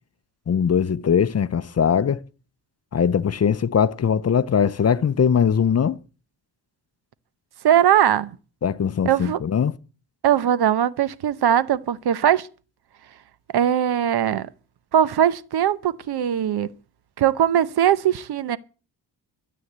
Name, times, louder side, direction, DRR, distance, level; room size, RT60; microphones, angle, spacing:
voice 1, 0.5-2.2 2.9-6.0 8.6-9.7, left 7 dB, 35° left, 0.7 m, -20 dB
voice 2, 7.6-8.4 9.0-9.4 10.2-12.5 13.5-14.5 14.9-16.7 17.2-18.6, right 10 dB, 65° right, 0.9 m, -20 dB
13.0 x 8.7 x 8.0 m
cardioid pair, 110°, 42 cm